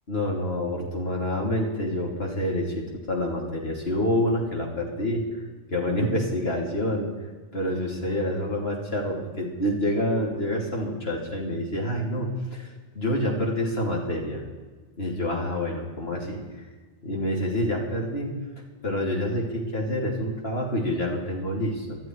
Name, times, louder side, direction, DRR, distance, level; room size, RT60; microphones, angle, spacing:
voice 1, 0.1-5.4 5.7-7.1 7.5-14.4 15.0-16.4 17.0-18.4 18.8-22.0, left 1 dB, 55° left, -1 dB, 3.3 m, -27 dB
19.0 x 13.0 x 4.7 m, 1.3 s
omnidirectional pair, 1.3 m